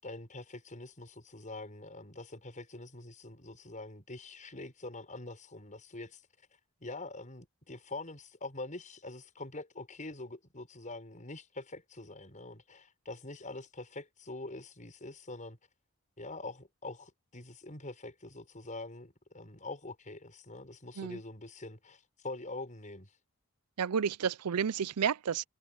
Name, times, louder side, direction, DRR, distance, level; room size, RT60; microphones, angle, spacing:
voice 1, 0.0-6.2 6.8-15.6 16.2-23.1, left 2 dB, 35° left, 6.5 m, -44 dB
voice 2, 23.8-25.4, right 7 dB, 90° right, 0.5 m, -31 dB
head